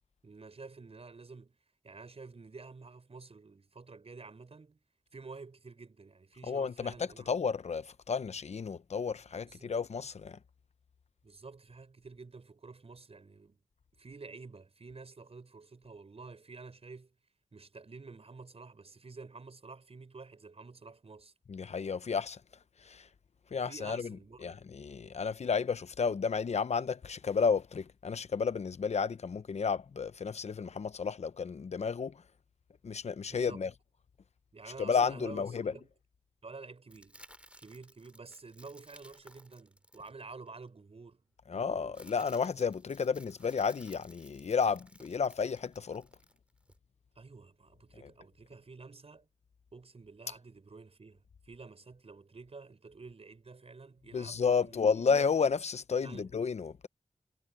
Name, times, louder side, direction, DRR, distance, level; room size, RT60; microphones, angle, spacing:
voice 1, 0.2-1.6 1.8-4.8 5.1-7.3 9.4-9.7 11.2-13.6 13.9-17.1 17.5-21.3 23.5-24.6 33.3-33.6 34.5-35.9 36.4-37.2 37.6-41.3 41.5-42.0 47.1-49.3 49.7-55.4 56.0-56.3, right 4 dB, 65° right, 6.5 m, -50 dB
voice 2, 6.5-10.4 21.5-22.4 22.8-23.1 23.5-24.0 24.4-32.2 32.8-33.7 34.8-35.7 41.5-46.1 54.1-56.9, left 5 dB, 80° left, 0.8 m, -32 dB
sound 1, 36.9-40.6 41.5-46.8, right 1 dB, 10° right, 4.2 m, -58 dB
cardioid pair, 50°, 11 cm